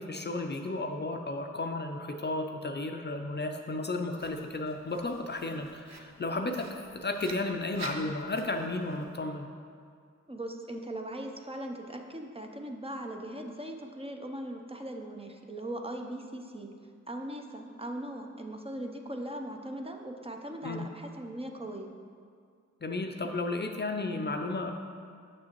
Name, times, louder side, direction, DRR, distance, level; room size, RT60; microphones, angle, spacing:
voice 1, 0.0-9.5 20.6-20.8 22.8-24.7, left 2 dB, 35° left, 4 dB, 0.5 m, -33 dB
Writing, 4.2-9.2, right 4 dB, 65° right, 0.6 m, -48 dB
voice 2, 10.3-16.7 17.1-21.9, right 1 dB, 20° right, 3 dB, 0.6 m, -39 dB
6.3 x 6.1 x 3.0 m, 2.2 s
cardioid pair, 40°, 29 cm